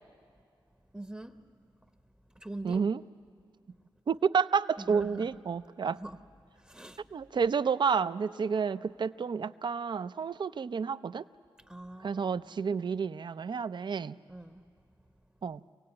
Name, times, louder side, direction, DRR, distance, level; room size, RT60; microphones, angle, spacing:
voice 1, 0.9-1.4 2.3-2.8 4.8-5.3 5.9-6.2 6.6-7.0 11.7-12.4 14.3-14.6, right 1 dB, 10° right, 8 dB, 0.8 m, -43 dB
voice 2, 2.6-3.0 4.1-6.0 7.1-11.2 12.0-14.2 15.4-15.6, right 6 dB, 60° right, 14 dB, 0.5 m, -30 dB
25.5 x 17.0 x 8.7 m, 2.3 s
cardioid pair, 55°, 9 cm